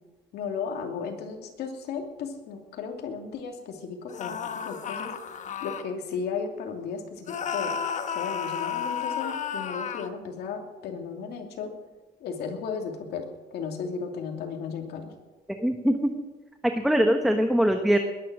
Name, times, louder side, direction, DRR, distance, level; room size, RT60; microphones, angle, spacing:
voice 1, 0.3-5.1 5.6-7.7 8.1-11.7 12.2-15.1, left 5 dB, 75° left, 3 dB, 2.7 m, -35 dB
sound 1, 4.1-5.8 7.3-10.1, left 7 dB, 45° left, 1.2 m, -32 dB
voice 2, 15.5-16.1 16.6-18.0, equal, ahead, 5 dB, 1.2 m, -22 dB
20.5 x 10.0 x 6.2 m, 1.2 s
cardioid pair, 110°, 17 cm